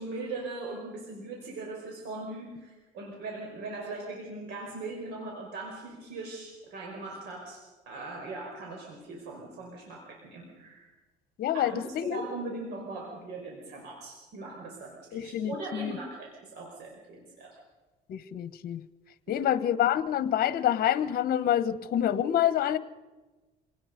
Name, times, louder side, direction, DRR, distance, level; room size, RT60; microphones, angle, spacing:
voice 1, 0.0-7.6 7.9-10.9 11.5-17.6 19.3-19.5, right 3 dB, 85° right, 0 dB, 5.2 m, -40 dB
voice 2, 11.4-12.2 15.1-16.0 18.1-18.8 19.3-22.8, left 11 dB, 65° left, 14 dB, 1.3 m, -27 dB
26.5 x 19.0 x 5.3 m, 1.2 s
cardioid pair, 110°, 17 cm